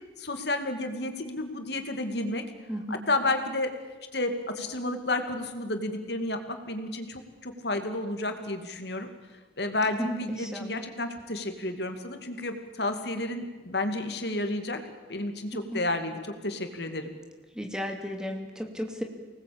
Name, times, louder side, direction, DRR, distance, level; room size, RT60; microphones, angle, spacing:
voice 1, 0.2-2.4 2.9-3.7 4.1-9.1 9.6-14.8 15.1-17.1, left 2 dB, 65° left, 7 dB, 2.5 m, -31 dB
voice 2, 2.7-3.0 10.0-10.8 15.5-15.8 17.5-19.0, equal, 5° right, 4 dB, 2.5 m, -34 dB
24.5 x 19.5 x 8.8 m, 1.3 s
head